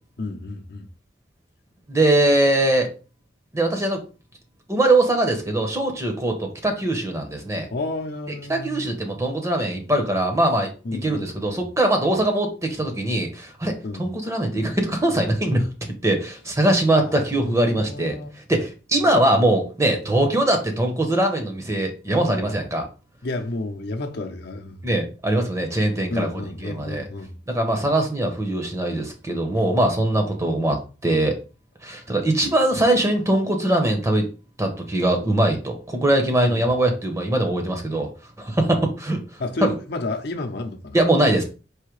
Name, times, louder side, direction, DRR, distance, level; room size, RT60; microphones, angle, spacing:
voice 1, 0.2-0.9 7.7-8.9 10.8-11.6 13.8-14.1 17.0-18.3 19.0-19.1 23.2-24.9 26.1-27.4 36.5-36.7 38.6-38.8 39.4-41.0, left 2 dB, 60° left, 0.7 m, -31 dB
voice 2, 1.9-2.9 3.5-4.0 4.7-7.7 8.5-10.7 11.0-15.7 16.0-18.2 18.5-22.9 24.8-27.0 27.5-31.4 31.8-34.3 34.6-38.1 38.4-39.2 39.6-39.7 40.9-41.4, right 1 dB, 15° right, 0.8 m, -21 dB
4.8 x 2.8 x 3.1 m
head